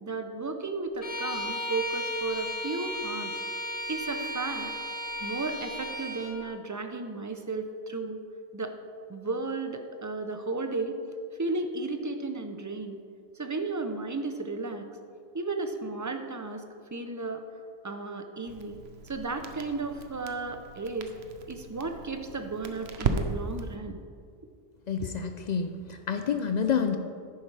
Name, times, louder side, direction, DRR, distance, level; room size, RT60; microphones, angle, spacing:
voice 1, 0.0-3.4 3.9-4.7 5.2-8.2 8.5-8.7 9.1-11.0 11.4-13.0 13.4-14.9 15.3-16.6 16.9-17.4 17.8-18.8 19.0-21.1 21.5-24.0, right 3 dB, 25° right, 6 dB, 0.5 m, -34 dB
Bowed string instrument, 1.0-6.4, equal, 35° left, 1.2 m, -35 dB
Crackle, 18.5-23.8, right 4 dB, 90° right, 1.0 m, -36 dB
voice 2, 24.9-27.0, left 6 dB, 55° left, 7 dB, 0.5 m, -28 dB
10.5 x 9.3 x 3.3 m, 2.2 s
omnidirectional pair, 1.0 m